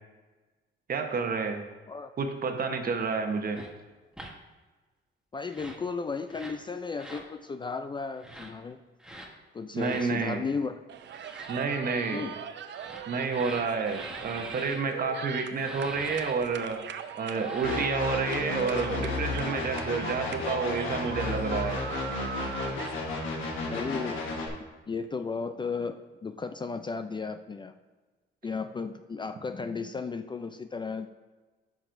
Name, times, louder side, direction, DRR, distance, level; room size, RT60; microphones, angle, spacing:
voice 1, 0.9-1.6 2.2-3.6 9.7-10.4 11.5-12.3 13.1-16.8 17.2-21.8, right 4 dB, 50° right, 5 dB, 1.0 m, -29 dB
sound 1, 3.5-3.7 4.1-4.3 5.4-5.8 6.3-6.6 6.9-7.3 8.2-8.5 9.0-9.3 9.8-10.1 11.1-11.5 12.6-14.8 15.5-16.3 17.2-18.0, right 1 dB, 5° right, 1.1 m, -44 dB
voice 2, 5.3-8.8 9.5-10.8 12.1-12.3 23.7-24.2 24.9-27.7 28.4-31.1, left 4 dB, 25° left, 9 dB, 0.3 m, -34 dB
sound 2, 10.9-22.9, right 9 dB, 65° right, 0.5 m, -41 dB
sound 3, 17.6-24.5, left 3 dB, 80° left, 1.4 m, -33 dB
9.9 x 6.1 x 2.6 m, 1.3 s
cardioid pair, 90°, 20 cm